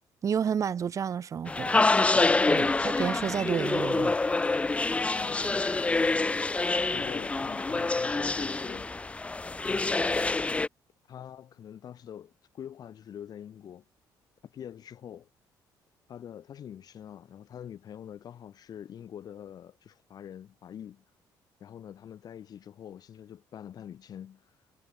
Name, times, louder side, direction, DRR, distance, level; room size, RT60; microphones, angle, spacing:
voice 1, 0.2-1.8 2.5-4.2, right 7 dB, 45° right, 1.5 m, -30 dB
sound 1, 1.5-10.7, left 3 dB, 15° left, 0.6 m, -26 dB
voice 2, 1.7-2.4 5.2-6.2 6.9-8.9 9.6-10.5 11.1-13.8 14.4-15.3 16.1-21.0 21.6-24.5, left 9 dB, 55° left, 2.9 m, -45 dB
cardioid pair, 110°, 8 cm